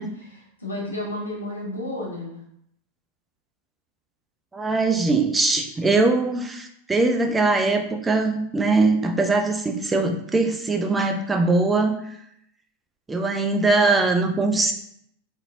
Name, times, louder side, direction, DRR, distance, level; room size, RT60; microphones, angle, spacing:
voice 1, 0.0-2.4, left 1 dB, 80° left, -3 dB, 0.9 m, -32 dB
voice 2, 4.5-12.0 13.1-14.7, right 3 dB, 10° right, 4 dB, 0.4 m, -21 dB
2.9 x 2.7 x 2.5 m, 0.72 s
figure-of-eight pair, 90°, 0 cm